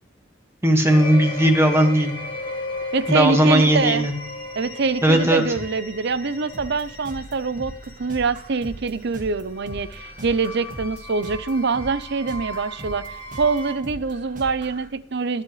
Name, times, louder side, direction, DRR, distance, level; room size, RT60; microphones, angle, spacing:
voice 1, 0.6-2.1 3.1-4.1 5.0-5.4, right 1 dB, 15° right, 4 dB, 1.7 m, -17 dB
sound 1, 0.9-13.7, left 1 dB, 25° left, 2.0 m, -36 dB
voice 2, 2.9-4.1 4.6-13.0 13.4-15.4, right 4 dB, 60° right, 15 dB, 0.6 m, -24 dB
sound 2, 6.5-14.9, right 1 dB, 40° right, 1.6 m, -40 dB
21.0 x 7.6 x 3.2 m, 0.64 s
head